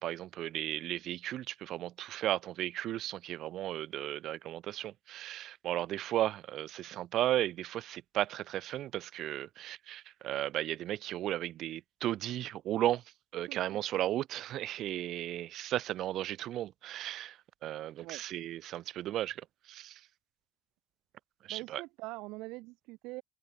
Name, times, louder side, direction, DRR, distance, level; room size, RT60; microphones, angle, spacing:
voice 1, 0.0-13.0 13.3-20.0 21.4-21.8, right 13 dB, 65° right, 1.6 m, -35 dB
voice 2, 13.5-14.0 18.0-18.2 21.5-23.2, right 23 dB, 85° right, 7.2 m, -44 dB
cardioid pair, 110°, 0 cm